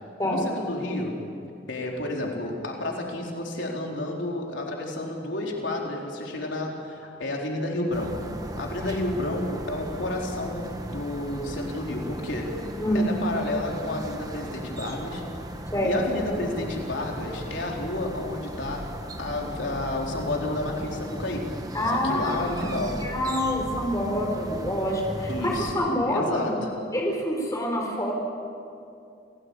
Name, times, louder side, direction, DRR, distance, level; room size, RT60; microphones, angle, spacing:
voice 1, 0.2-1.2 1.7-12.7 12.9-15.2 15.8-18.9 19.2-21.6 21.9-23.1 25.3-26.7, left 1 dB, 90° left, 0 dB, 4.0 m, -31 dB
sound 1, 7.9-25.7, right 1 dB, 20° right, 1.4 m, -37 dB
voice 2, 21.7-22.4 23.0-26.6 26.9-28.1, left 1 dB, 20° left, 0 dB, 4.3 m, -26 dB
28.0 x 18.0 x 8.5 m, 2.5 s
head